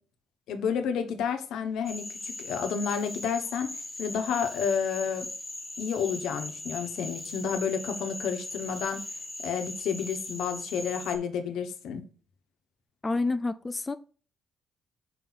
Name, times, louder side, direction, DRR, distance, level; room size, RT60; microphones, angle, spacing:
voice 1, 0.5-3.7 4.0-5.3 5.8-9.0 9.4-12.0, left 7 dB, 85° left, 1.0 m, -30 dB
Cricket / Frog, 1.9-11.2, left 1 dB, 5° left, 1.4 m, -39 dB
voice 2, 13.0-14.0, left 3 dB, 20° left, 0.4 m, -28 dB
5.9 x 5.0 x 4.0 m
cardioid pair, 90°, 0 cm